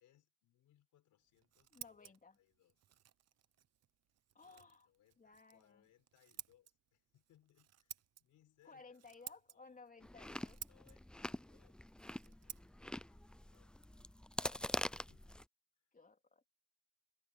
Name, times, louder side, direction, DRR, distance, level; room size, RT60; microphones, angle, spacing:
voice 1, 0.0-2.7 4.4-9.9 10.7-13.2 13.5-14.5 14.8-15.4 15.8-15.9, left 12 dB, 80° left, 4.5 m, -73 dB
Scissors, 1.2-14.8, right 10 dB, 55° right, 1.0 m, -57 dB
voice 2, 1.7-2.4 4.3-4.9 5.2-5.8 8.7-10.6 11.2-11.4 14.3-14.6 15.9-16.5, left 4 dB, 25° left, 3.6 m, -59 dB
Chewing mastication, 10.0-15.4, left 1 dB, 5° left, 0.4 m, -45 dB
cardioid pair, 90°, 30 cm